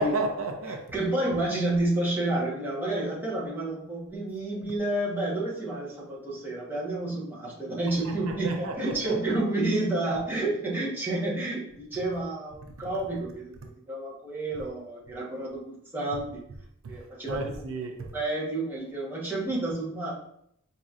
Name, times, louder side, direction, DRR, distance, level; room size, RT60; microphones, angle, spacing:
voice 1, 0.0-0.8 8.0-9.3 16.8-18.1, right 2 dB, 70° right, 3 dB, 0.5 m, -32 dB
voice 2, 0.9-16.4 16.9-17.4 18.1-20.1, right 2 dB, 10° right, -6 dB, 1.1 m, -30 dB
4.9 x 2.8 x 2.4 m, 0.72 s
head